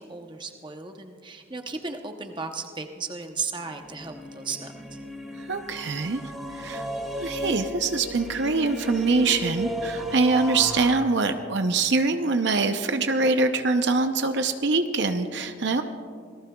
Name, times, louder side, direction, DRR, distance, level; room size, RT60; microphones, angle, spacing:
voice 1, 0.0-5.0, right 4 dB, 20° right, 5 dB, 0.8 m, -35 dB
sound 1, 3.7-10.9, equal, ahead, 1.4 m, -34 dB
voice 2, 5.5-6.2 6.5-6.9 7.2-15.8, right 3 dB, 55° right, 7 dB, 0.7 m, -24 dB
26.5 x 18.5 x 2.3 m, 2.2 s
head